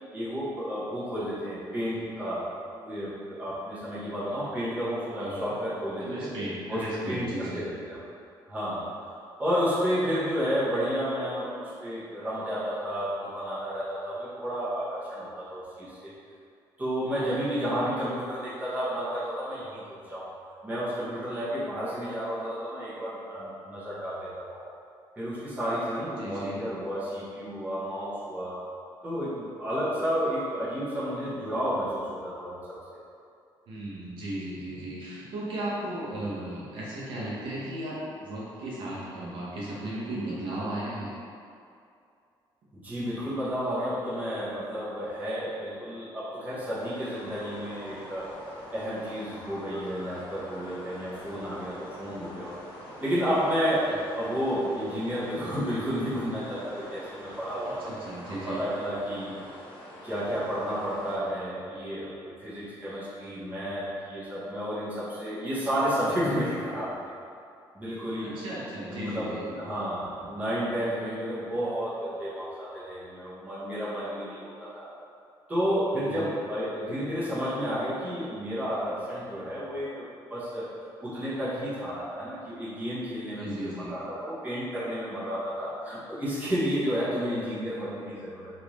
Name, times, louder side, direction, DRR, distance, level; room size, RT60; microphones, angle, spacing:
voice 1, 0.1-2.5 2.8-6.3 6.7-8.0 8.4-8.8 9.2-16.1 16.8-20.3 20.6-24.6 25.2-28.6 29.0-32.8 36.1-36.2 42.7-48.3 48.7-52.5 53.0-53.9 54.1-57.8 58.3-59.3 60.0-62.1 62.4-66.9 67.7-68.4 68.9-74.9 75.5-80.0 80.3-80.7 81.0-88.5, equal, 15° right, -11 dB, 1.0 m, -31 dB
voice 2, 5.1-5.5 6.0-7.6 26.2-26.6 33.7-41.1 57.9-58.6 68.2-69.5 76.0-76.3 83.4-84.0, right 1 dB, 65° right, -7 dB, 0.7 m, -36 dB
sound 1, 46.8-61.2, left 1 dB, 85° left, 0.7 m, -46 dB
sound 2, 47.1-59.8, left 1 dB, 45° left, 0.6 m, -50 dB
3.4 x 2.6 x 3.0 m, 2.4 s
cardioid pair, 160°, 9 cm